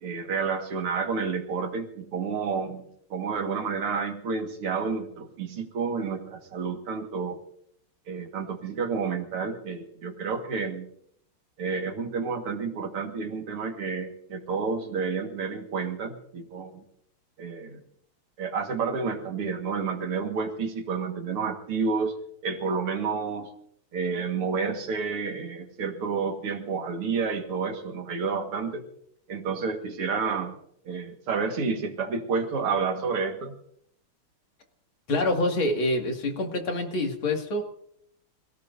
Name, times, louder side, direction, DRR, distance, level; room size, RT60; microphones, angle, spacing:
voice 1, 0.0-7.4 8.1-10.9 11.6-16.8 17.4-17.8 18.4-23.5 23.9-28.9 29.3-30.5 30.9-33.5, right 5 dB, 85° right, 5 dB, 2.7 m, -30 dB
voice 2, 35.1-37.6, left 1 dB, 65° left, 2 dB, 3.1 m, -26 dB
25.5 x 17.5 x 2.7 m, 0.70 s
omnidirectional pair, 2.4 m